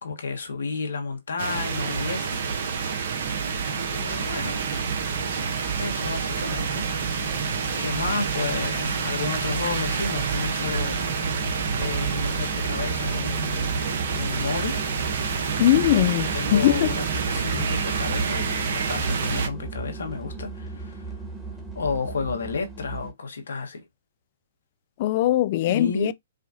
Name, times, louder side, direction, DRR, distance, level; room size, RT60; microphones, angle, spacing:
voice 1, 0.0-2.4 3.7-4.6 5.8-6.9 7.8-13.8 14.1-14.8 16.3-21.2 21.7-23.8 25.6-26.1, left 4 dB, 75° left, 1.3 m, -32 dB
sound 1, 1.4-19.5, right 5 dB, 60° right, 0.8 m, -28 dB
sound 2, 3.2-23.1, right 3 dB, ahead, 1.3 m, -36 dB
voice 2, 15.6-16.9 25.0-26.1, left 13 dB, 45° left, 0.4 m, -21 dB
4.9 x 2.2 x 2.7 m
figure-of-eight pair, 125°, 0 cm